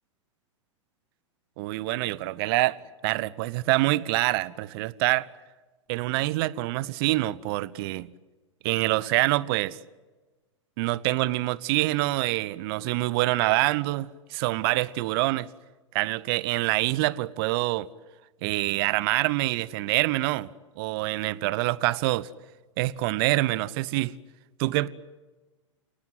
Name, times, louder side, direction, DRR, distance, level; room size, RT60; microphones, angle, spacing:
voice 1, 1.6-2.8 3.0-5.3 5.9-8.1 8.6-9.8 10.8-15.5 15.9-17.9 18.4-22.3 22.8-24.1 24.6-24.9, right 19 dB, 45° right, 1.0 m, -26 dB
28.5 x 18.5 x 9.6 m
figure-of-eight pair, 100°, 16 cm